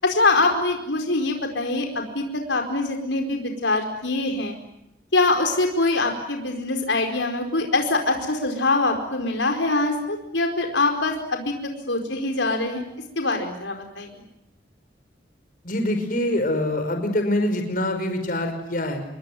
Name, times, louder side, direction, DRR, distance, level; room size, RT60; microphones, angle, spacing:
voice 1, 0.0-4.6 5.1-11.5 11.9-12.8 13.2-14.2, left 2 dB, 80° left, 4 dB, 4.8 m, -23 dB
voice 2, 15.6-19.0, left 1 dB, 50° left, 6 dB, 5.5 m, -24 dB
28.5 x 22.5 x 9.4 m, 0.81 s
head